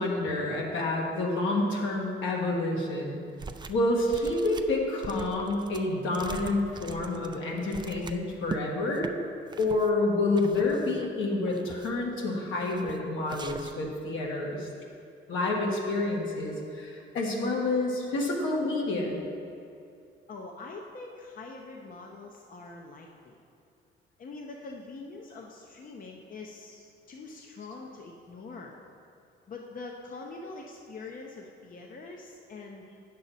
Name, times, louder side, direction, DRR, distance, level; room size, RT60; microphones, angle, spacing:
voice 1, 0.0-3.2 3.7-9.1 9.6-14.7 15.3-19.2, left 2 dB, 75° left, -1 dB, 1.6 m, -28 dB
sound 1, 3.4-3.8 4.1-8.6 8.9-9.1 9.5-9.9 10.4-11.1 11.5-12.1 12.6-13.0 13.3-13.9, right 4 dB, 20° right, 0.4 m, -42 dB
voice 2, 20.3-23.4 24.2-26.8 27.1-28.8 29.5-32.9, left 3 dB, 45° left, 1 dB, 0.8 m, -44 dB
9.0 x 6.5 x 4.1 m, 2.5 s
cardioid pair, 90°, 20 cm